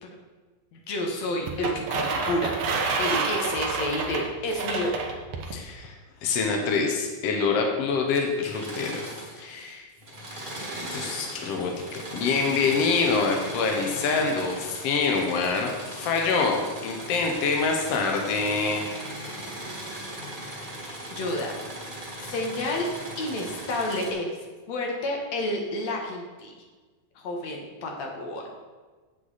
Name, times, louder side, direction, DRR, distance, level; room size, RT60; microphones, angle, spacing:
voice 1, 0.7-2.5 3.0-5.0 6.5-6.6 20.7-21.5 22.3-22.9 23.2-24.3 24.7-26.5 27.2-28.4, left 1 dB, 60° left, 0 dB, 2.2 m, -30 dB
sound 1, 1.5-5.6, right 4 dB, 70° right, 1.5 m, -29 dB
voice 2, 5.5-5.9 6.2-9.1 9.4-9.9 10.9-18.9, left 4 dB, 75° left, 2 dB, 1.4 m, -26 dB
Engine / Mechanisms, 8.3-9.7 10.0-24.1, right 1 dB, 35° right, 0.8 m, -38 dB
8.0 x 8.0 x 4.1 m, 1.4 s
omnidirectional pair, 4.1 m